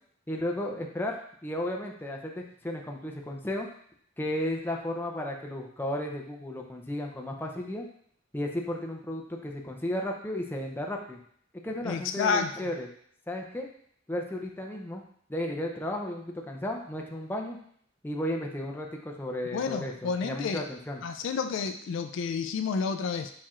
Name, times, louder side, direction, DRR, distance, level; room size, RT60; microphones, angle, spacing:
voice 1, 0.3-3.7 4.2-7.8 8.3-11.2 11.6-12.9 13.3-13.7 14.1-15.0 15.3-17.6 18.0-21.0, left 1 dB, 10° left, 0 dB, 0.5 m, -34 dB
voice 2, 11.8-12.5 19.5-20.7 21.0-23.3, left 5 dB, 65° left, 7 dB, 0.3 m, -30 dB
4.6 x 4.3 x 2.4 m, 0.63 s
head